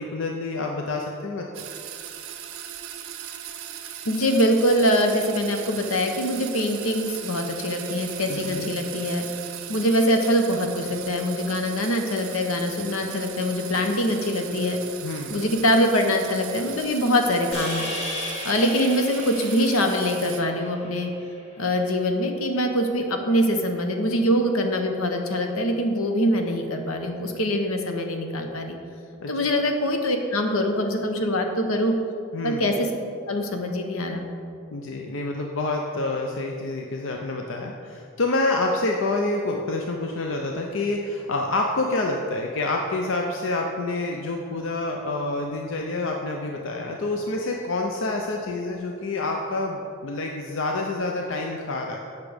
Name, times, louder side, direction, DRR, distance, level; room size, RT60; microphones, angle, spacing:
voice 1, 0.0-1.6 8.3-8.7 15.0-15.4 29.2-29.6 32.3-32.6 34.7-52.0, left 2 dB, 65° left, 1 dB, 0.5 m, -28 dB
sound 1, 1.5-20.4, right 10 dB, 85° right, 0.7 m, -38 dB
voice 2, 4.0-9.3 9.7-14.8 15.3-17.9 18.4-21.1 21.6-28.8 29.3-31.9 32.4-32.9 33.3-34.3, equal, 80° left, 4 dB, 0.9 m, -23 dB
sound 2, 17.5-21.9, left 1 dB, 30° left, 1.2 m, -35 dB
8.3 x 5.9 x 5.0 m, 2.5 s
head